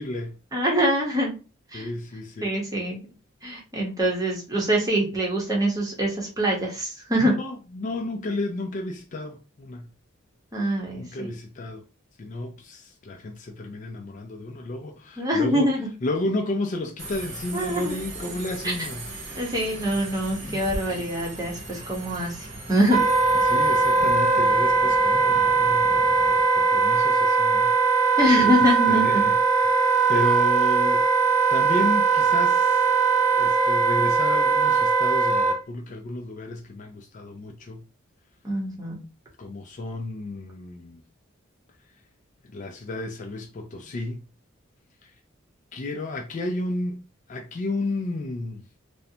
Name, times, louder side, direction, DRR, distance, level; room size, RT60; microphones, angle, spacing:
voice 1, 0.0-0.4 1.7-2.6 7.2-9.9 11.0-11.8 12.2-15.7 16.0-19.1 20.4-21.1 23.4-26.2 26.6-27.8 28.0-28.2 28.9-31.1 31.5-32.9 33.3-37.8 39.4-41.0 42.4-44.3 45.0-45.1 45.7-48.6, left 2 dB, 40° left, 0.3 m, -32 dB
voice 2, 0.5-1.4 1.7-1.9 2.4-3.0 3.4-7.3 10.5-11.3 15.2-15.9 17.5-18.4 18.6-18.7 19.3-23.0 28.2-29.2 38.4-39.0, equal, 15° right, 0.8 m, -24 dB
Subway metro underground, 17.0-26.4, right 1 dB, 60° right, 0.8 m, -38 dB
Wind instrument woodwind instrument, 22.9-35.6, right 4 dB, 35° right, 0.4 m, -20 dB
2.5 x 2.1 x 2.6 m
head